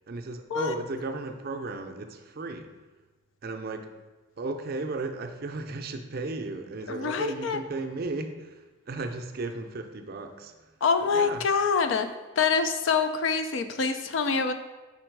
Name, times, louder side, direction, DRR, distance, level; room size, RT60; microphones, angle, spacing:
voice 1, 0.1-2.7 3.4-3.9 4.4-10.5 11.0-11.4, right 3 dB, 50° right, 5 dB, 0.5 m, -35 dB
voice 2, 6.9-7.6 10.8-12.1 12.4-14.5, left 5 dB, 70° left, 8 dB, 0.4 m, -25 dB
5.2 x 4.3 x 4.6 m, 1.2 s
head